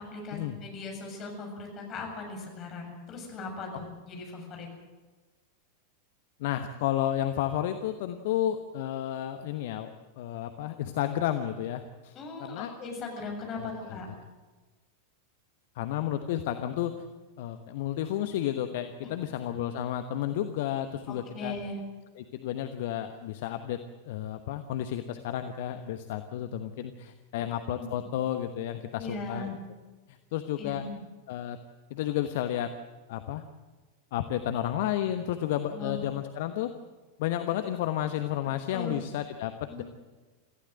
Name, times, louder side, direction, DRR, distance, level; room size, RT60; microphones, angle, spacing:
voice 1, 0.0-4.7 12.1-14.1 21.1-21.8 27.3-27.4 27.8-28.1 29.0-29.5 30.6-31.0 35.7-36.0 38.7-39.0 39.7-39.8, left 3 dB, 30° left, 2 dB, 7.3 m, -39 dB
voice 2, 6.4-12.1 12.4-12.7 13.6-14.0 15.7-17.0 17.4-21.5 22.2-23.8 24.0-29.5 30.1-30.9 31.3-31.6 31.9-32.7 33.1-33.4 34.1-36.7 37.2-39.5 39.8-39.9, left 11 dB, 50° left, 8 dB, 1.1 m, -32 dB
26.0 x 15.5 x 7.7 m, 1.3 s
figure-of-eight pair, 90°, 0 cm